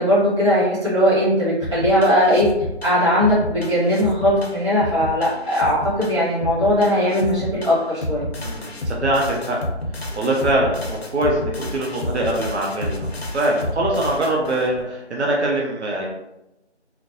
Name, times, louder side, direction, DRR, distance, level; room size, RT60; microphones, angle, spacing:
voice 1, 0.0-2.5 2.8-8.3, equal, 25° right, -13 dB, 1.1 m, -19 dB
sound 1, 1.6-14.8, left 1 dB, 65° left, 0.5 m, -30 dB
voice 2, 8.4-9.6 10.2-16.1, right 1 dB, 75° right, -2 dB, 0.7 m, -23 dB
2.6 x 2.1 x 2.6 m, 0.92 s
figure-of-eight pair, 175°, 34 cm